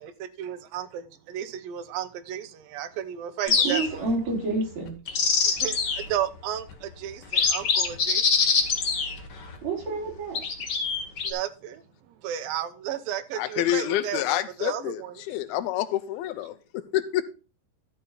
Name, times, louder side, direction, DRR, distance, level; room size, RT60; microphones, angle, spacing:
voice 1, 0.0-4.0 5.5-8.5 11.2-15.1, right 10 dB, 75° right, 2.5 m, -34 dB
sound 1, 3.5-4.1 4.9-6.1 6.7-6.8 7.2-9.6 10.3-11.3, left 5 dB, 55° left, 1.1 m, -24 dB
voice 2, 3.6-5.0 9.6-10.4, right 3 dB, 50° right, 4.7 m, -28 dB
voice 3, 13.4-17.2, left 13 dB, 85° left, 2.6 m, -28 dB
12.5 x 6.7 x 3.9 m
omnidirectional pair, 4.3 m